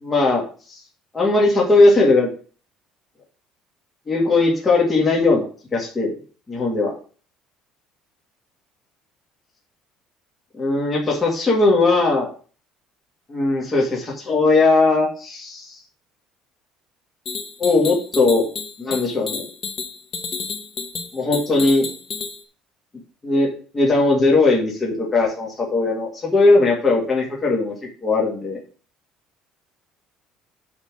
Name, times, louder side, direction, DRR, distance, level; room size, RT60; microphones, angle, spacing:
voice 1, 0.0-0.4 0.7-0.8 1.1-2.3 4.1-5.5 5.7-6.1 6.5-6.9 10.6-12.3 13.3-15.8 17.6-18.5 18.8-19.5 21.1-21.8 23.2-27.7 28.0-28.6, left 3 dB, 20° left, -3 dB, 2.2 m, -18 dB
sound 1, 17.2-22.4, left 5 dB, 35° left, 1.3 m, -31 dB
8.5 x 3.8 x 6.3 m, 0.39 s
cardioid pair, 150°, 0 cm